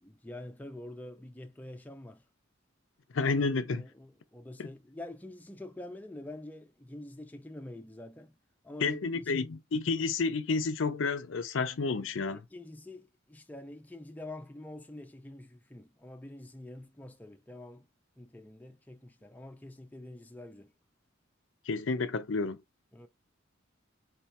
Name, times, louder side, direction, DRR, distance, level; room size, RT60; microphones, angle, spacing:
voice 1, 0.0-2.2 3.7-8.3 8.6-9.4 12.2-17.9 18.2-20.7 22.9-23.1, left 1 dB, 10° left, 0.6 m, -46 dB
voice 2, 3.1-3.8 4.6-4.7 8.8-12.4 21.7-22.6, left 4 dB, 75° left, 0.6 m, -30 dB
4.7 x 2.9 x 3.2 m
head